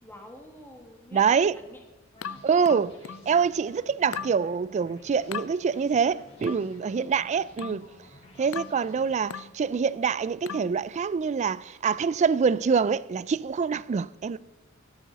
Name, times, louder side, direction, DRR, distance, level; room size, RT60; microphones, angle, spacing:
voice 1, 0.0-1.8 2.2-2.4 7.0-7.2 8.3-8.5, left 1 dB, 10° left, 1.8 m, -47 dB
voice 2, 1.1-1.5 2.4-2.9 3.3-7.9 8.4-14.4, right 6 dB, 35° right, 0.3 m, -25 dB
sound 1, 2.1-9.8, left 1 dB, 30° left, 3.7 m, -54 dB
sound 2, 2.2-3.3 4.1-4.4 5.3-5.5 6.4-6.7 7.6-7.9 8.5-8.8 9.3-9.6 10.5-10.8, left 7 dB, 80° left, 0.4 m, -37 dB
13.5 x 12.0 x 4.0 m
head